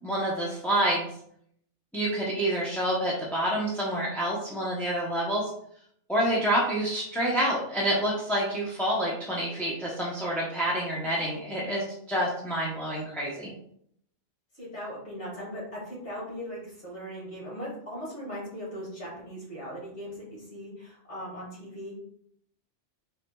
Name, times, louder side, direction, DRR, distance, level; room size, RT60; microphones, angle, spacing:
voice 1, 0.0-1.1 1.9-5.5 6.1-13.5, right 1 dB, ahead, -6 dB, 0.5 m, -28 dB
voice 2, 14.5-22.0, equal, 70° left, -6 dB, 2.3 m, -39 dB
4.3 x 4.0 x 2.2 m, 0.68 s
omnidirectional pair, 1.2 m